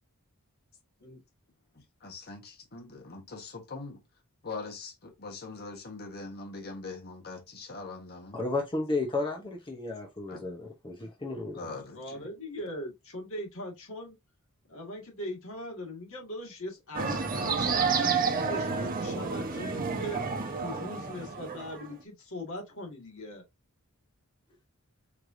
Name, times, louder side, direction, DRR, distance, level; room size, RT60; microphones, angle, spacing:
voice 1, 2.0-4.0 4.4-8.4 10.3-10.4 11.5-12.3, left 3 dB, 45° left, 1.3 m, -42 dB
voice 2, 8.3-11.7, left 3 dB, 20° left, 0.9 m, -33 dB
voice 3, 11.9-14.2 14.7-20.2 20.6-23.4, equal, 65° left, 1.8 m, -40 dB
sound 1, 16.9-21.9, right 5 dB, 40° right, 0.9 m, -30 dB
4.8 x 3.3 x 2.6 m
head